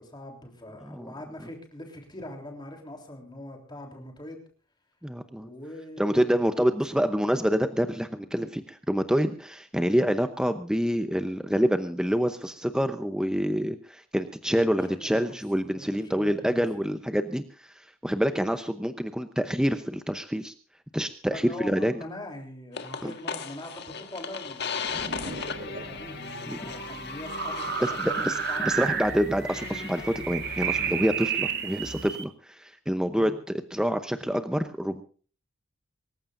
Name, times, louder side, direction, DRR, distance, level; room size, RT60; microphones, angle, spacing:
voice 1, 0.0-4.4 5.3-6.7 8.3-8.5 14.9-15.4 15.7-16.6 21.3-28.9 33.1-33.3, left 1 dB, 20° left, 3 dB, 3.5 m, -43 dB
voice 2, 5.0-5.5 6.0-20.5 20.9-22.0 23.0-23.1 26.5-26.6 27.8-28.4 28.6-35.0, equal, 5° right, 8 dB, 0.8 m, -27 dB
sound 1, 22.7-32.1, left 5 dB, 50° left, 1.6 m, -38 dB
sound 2, 24.8-32.2, right 7 dB, 50° right, 1.6 m, -32 dB
25.5 x 15.0 x 2.6 m, 0.41 s
head